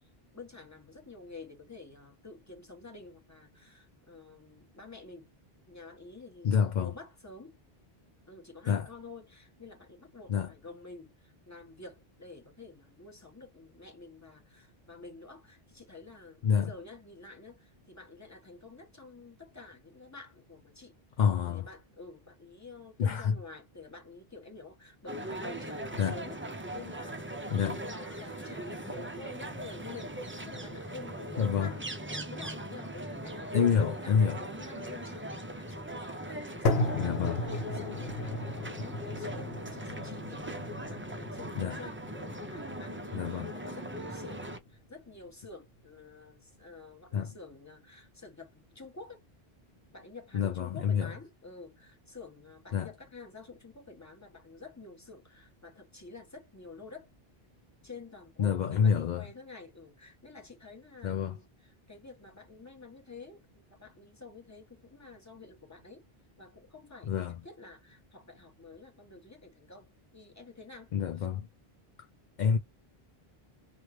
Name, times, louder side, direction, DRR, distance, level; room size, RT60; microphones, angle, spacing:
voice 1, 0.3-5.3 5.7-7.6 8.3-21.0 21.4-26.4 26.7-31.8 32.3-44.4 44.7-49.2 49.9-57.1 57.8-61.4 61.9-66.1 66.4-70.9, left 3 dB, 15° left, 1.1 m, -49 dB
voice 2, 6.4-7.0 8.7-8.9 10.3-10.5 16.4-16.7 21.2-21.7 23.0-23.4 26.0-26.2 27.5-27.8 31.4-31.7 33.5-34.4 36.9-37.5 41.6-41.8 43.1-43.5 47.1-47.3 50.3-51.1 52.7-52.9 58.4-59.3 61.0-61.4 67.0-67.4 70.9-71.5 72.4-72.6, left 7 dB, 55° left, 0.6 m, -28 dB
sound 1, 25.1-44.6, right 1 dB, 15° right, 0.4 m, -40 dB
sound 2, 36.7-44.7, left 2 dB, 80° left, 1.0 m, -35 dB
3.1 x 2.5 x 2.9 m
omnidirectional pair, 1.0 m